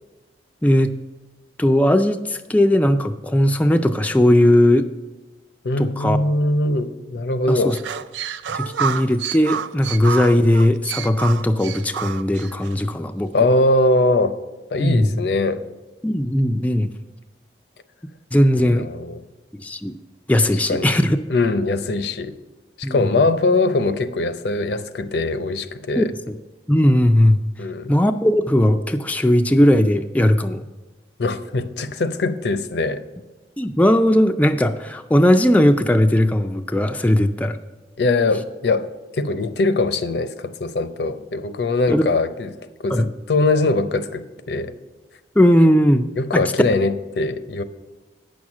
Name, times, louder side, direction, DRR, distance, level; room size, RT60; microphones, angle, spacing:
voice 1, 0.6-0.9 1.6-4.9 5.8-6.2 7.5-7.8 8.5-13.5 14.8-15.2 16.0-16.9 18.3-18.9 19.6-19.9 20.3-21.2 22.8-23.0 26.0-26.4 26.7-27.4 27.9-30.6 33.6-37.6 41.9-42.1 42.9-43.1 45.4-46.4, left 1 dB, 10° left, 0.3 m, -18 dB
voice 2, 5.6-7.8 13.3-14.3 14.7-15.6 18.6-19.2 20.7-20.9 21.3-22.4 22.8-26.1 27.6-27.9 31.2-33.0 38.0-38.9 39.1-42.5 42.8-44.7 46.2-47.6, left 2 dB, 70° left, 0.6 m, -21 dB
sound 1, 7.7-12.8, right 8 dB, 85° right, 0.4 m, -29 dB
9.2 x 6.2 x 7.2 m
head